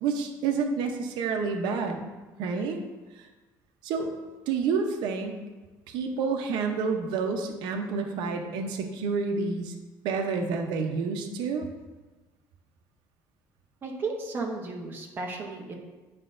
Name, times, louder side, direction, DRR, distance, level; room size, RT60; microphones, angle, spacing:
voice 1, 0.0-2.0 2.4-2.8 3.2-3.3 3.8-4.2 4.5-5.4 5.9-9.7 10.0-11.7, right 5 dB, 80° right, 4 dB, 0.7 m, -29 dB
voice 2, 13.8-15.8, right 3 dB, 25° right, 0 dB, 0.8 m, -34 dB
9.7 x 5.0 x 2.5 m, 1.2 s
cardioid pair, 175°, 8 cm